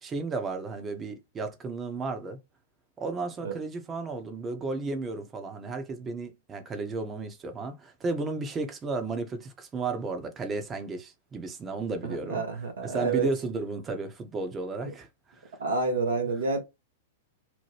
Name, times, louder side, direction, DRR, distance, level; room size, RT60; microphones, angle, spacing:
voice 1, 0.0-2.4 3.0-12.4 12.8-15.1, right 3 dB, 20° right, 0.8 m, -33 dB
voice 2, 12.0-13.3 15.6-16.6, right 4 dB, 75° right, 0.8 m, -28 dB
2.9 x 2.1 x 3.2 m
figure-of-eight pair, 100°, 0 cm